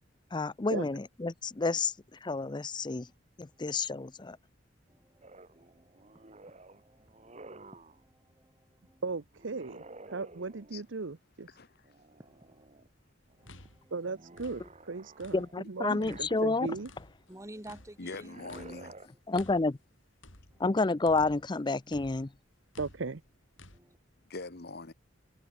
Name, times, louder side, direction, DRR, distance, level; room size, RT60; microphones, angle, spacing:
voice 1, 0.3-3.1 3.4-4.4 15.3-16.8 19.3-19.8 20.6-22.3, left 3 dB, 25° left, 0.5 m, -30 dB
voice 2, 4.9-9.0 12.2-12.7 13.4-13.9 17.3-18.3 19.1-19.2 20.5-20.6 23.7-24.0, right 1 dB, 15° right, 3.5 m, -53 dB
sound 1, 5.2-8.0 9.3-10.9 11.8-12.9 13.3-16.8 18.1-19.1, right 2 dB, 35° right, 2.3 m, -52 dB
voice 3, 9.0-9.8 10.1-11.5 13.9-15.4 15.7-16.9 22.8-23.2, right 4 dB, 75° right, 0.8 m, -37 dB
voice 4, 11.5-11.9 18.0-19.1 24.3-24.9, left 3 dB, 55° left, 1.5 m, -43 dB
sound 2, 13.2-15.7 16.0-21.6 21.9-23.8, left 2 dB, 85° left, 7.0 m, -54 dB
head